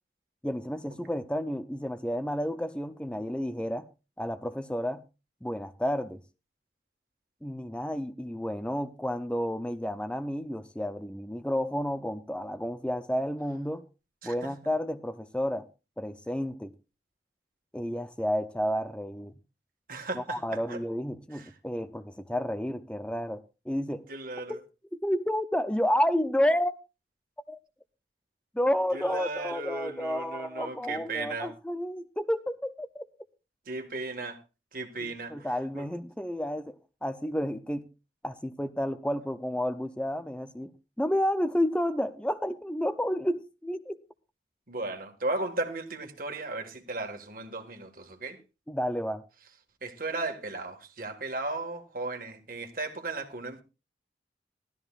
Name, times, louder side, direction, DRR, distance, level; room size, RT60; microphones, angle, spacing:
voice 1, 0.4-3.9 4.2-5.0 5.4-6.2 7.4-13.8 14.2-15.7 16.0-16.7 17.7-19.3 20.1-24.0 24.5-24.6 24.9-26.7 27.5-27.6 28.5-33.0 35.0-36.8 37.0-37.8 38.2-40.7 41.0-44.0 48.7-49.2, equal, 5° left, 0.5 m, -31 dB
voice 2, 19.9-20.4 20.7-20.8 21.3-21.5 24.1-24.6 28.9-31.5 33.7-34.4 34.7-35.5 35.8-35.9 44.7-48.4 49.8-53.6, right 2 dB, 50° right, 1.7 m, -35 dB
18.0 x 13.0 x 2.4 m
head